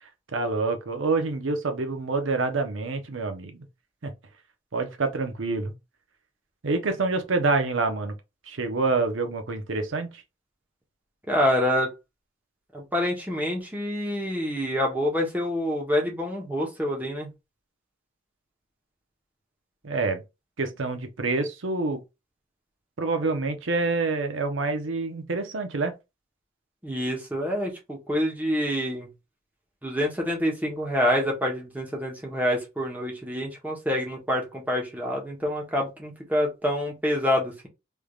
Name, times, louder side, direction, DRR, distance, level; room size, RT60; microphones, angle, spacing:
voice 1, 0.0-3.7 4.0-4.1 4.7-5.7 6.6-8.2 8.5-10.2 19.8-20.2 20.6-22.0 23.0-25.9, right 3 dB, 90° right, 0.8 m, -27 dB
voice 2, 11.3-11.9 12.7-17.3 26.8-29.1 29.8-37.7, left 1 dB, 10° right, 1.0 m, -27 dB
3.5 x 3.3 x 2.4 m
head